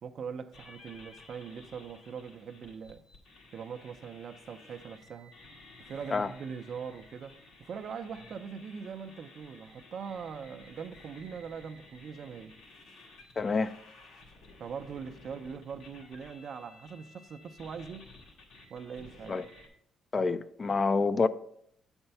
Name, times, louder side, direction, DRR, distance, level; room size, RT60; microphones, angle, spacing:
voice 1, 0.0-3.0 3.5-5.3 5.8-12.5 14.6-18.1 18.7-19.4, right 6 dB, 60° right, 0.6 m, -42 dB
sound 1, 0.5-19.7, left 2 dB, 90° left, 1.8 m, -54 dB
voice 2, 13.4-13.7 19.3-19.5 20.1-21.3, left 4 dB, 35° left, 0.4 m, -27 dB
7.9 x 4.4 x 5.5 m
cardioid pair, 90°, 0 cm